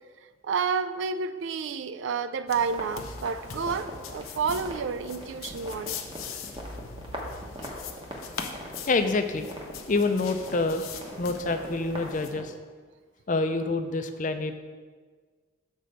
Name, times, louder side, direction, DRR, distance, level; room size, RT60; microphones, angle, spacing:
voice 1, 0.4-6.0, right 5 dB, 65° right, 12 dB, 0.4 m, -30 dB
sound 1, 2.5-12.3, left 5 dB, 90° left, 0.7 m, -41 dB
sound 2, 2.6-12.4, equal, 25° right, 1.0 m, -42 dB
voice 2, 8.9-9.5 9.9-12.5 13.3-14.6, left 3 dB, 40° left, 8 dB, 0.5 m, -27 dB
6.8 x 4.4 x 6.4 m, 1.5 s
head